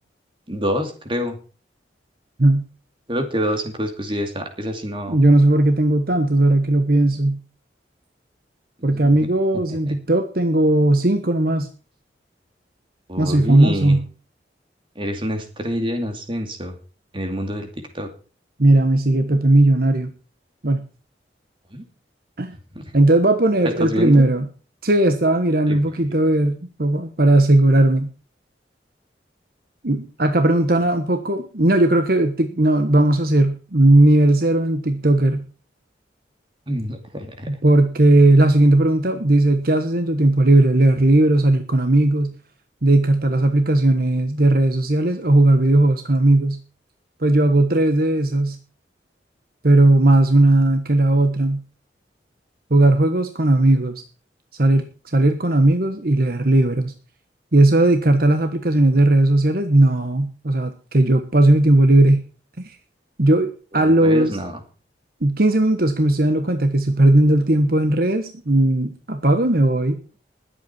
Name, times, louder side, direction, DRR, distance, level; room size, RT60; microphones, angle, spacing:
voice 1, 0.5-1.4 3.1-5.2 8.8-9.3 9.9-10.0 13.1-14.0 15.0-16.8 17.1-17.7 17.9-18.1 21.7-21.8 22.7-22.9 23.6-24.2 25.7-25.8 36.7-37.5 63.7-64.6, equal, 30° right, 5 dB, 2.6 m, -27 dB
voice 2, 5.1-7.4 8.8-11.7 13.2-14.0 18.6-20.1 20.6-20.9 22.4-22.5 22.9-24.5 24.8-28.1 29.8-35.4 37.5-42.4 42.8-46.6 47.2-48.6 49.6-51.6 52.7-54.0 54.6-56.9 57.5-62.2 62.6-62.8 63.2-64.4 65.2-70.0, right 1 dB, 55° right, 8 dB, 1.3 m, -17 dB
20.5 x 8.4 x 4.5 m, 0.36 s
head